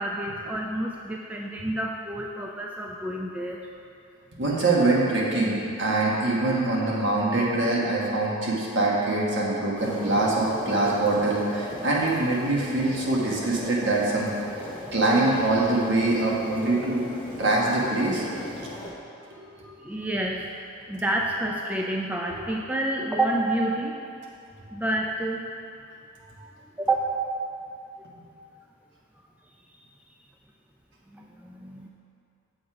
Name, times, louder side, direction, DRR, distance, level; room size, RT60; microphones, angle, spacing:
voice 1, 0.0-3.7 19.8-20.4 20.9-23.9 24.7-25.4 26.2-26.5 26.8-27.0 31.1-31.9, right 1 dB, 5° right, -1 dB, 0.3 m, -29 dB
voice 2, 4.4-14.3 14.9-17.1 17.4-18.2 19.3-19.7 22.3-22.4, right 2 dB, 60° right, -4 dB, 1.4 m, -24 dB
sound 1, 9.8-18.9, equal, 10° left, 1.1 m, -38 dB
7.6 x 5.3 x 4.8 m, 2.6 s
head